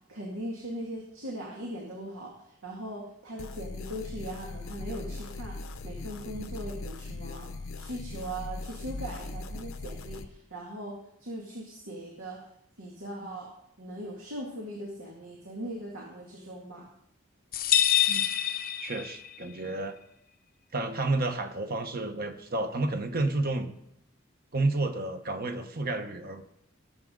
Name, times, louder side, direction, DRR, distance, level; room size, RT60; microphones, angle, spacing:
voice 1, 0.1-2.3 2.6-5.6 5.8-10.9 11.2-12.4 12.8-13.5 13.8-16.9, right 1 dB, 85° right, -2 dB, 2.2 m, -39 dB
sound 1, 3.4-10.3, left 2 dB, 75° left, 0.9 m, -39 dB
sound 2, 17.5-19.5, left 11 dB, 45° left, 0.7 m, -26 dB
voice 2, 18.8-20.0 20.7-23.7 24.5-26.4, right 2 dB, 50° right, 7 dB, 1.2 m, -30 dB
18.5 x 7.5 x 3.9 m, 0.74 s
head